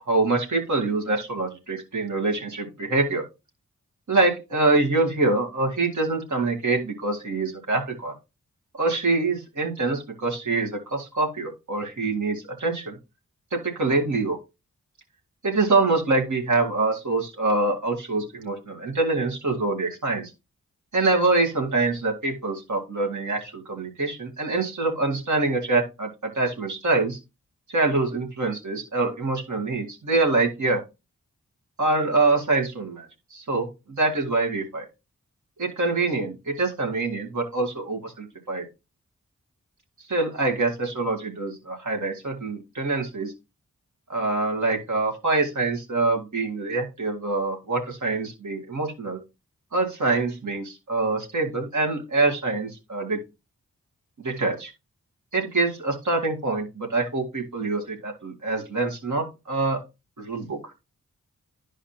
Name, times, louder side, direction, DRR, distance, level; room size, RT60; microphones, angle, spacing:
voice 1, 0.1-3.2 4.1-8.1 8.8-13.0 13.5-14.4 15.4-20.3 20.9-26.1 26.3-27.2 27.7-30.8 31.8-34.9 35.6-38.7 40.1-43.3 44.1-49.2 49.7-53.2 54.2-54.7 55.3-59.8 60.2-60.6, right 3 dB, 60° right, 1 dB, 2.4 m, -25 dB
11.0 x 5.0 x 2.9 m, 0.26 s
cardioid pair, 45°, 32 cm